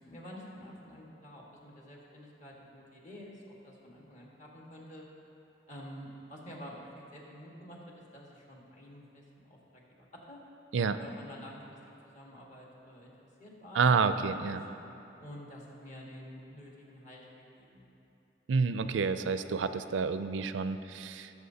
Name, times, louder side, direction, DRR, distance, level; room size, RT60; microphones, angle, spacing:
voice 1, 0.0-5.0 5.7-10.4 11.0-14.6 15.2-17.8, equal, 40° left, -3 dB, 1.6 m, -49 dB
voice 2, 13.7-14.6 18.5-21.3, right 5 dB, 90° right, 11 dB, 0.4 m, -29 dB
17.5 x 7.2 x 2.8 m, 2.9 s
head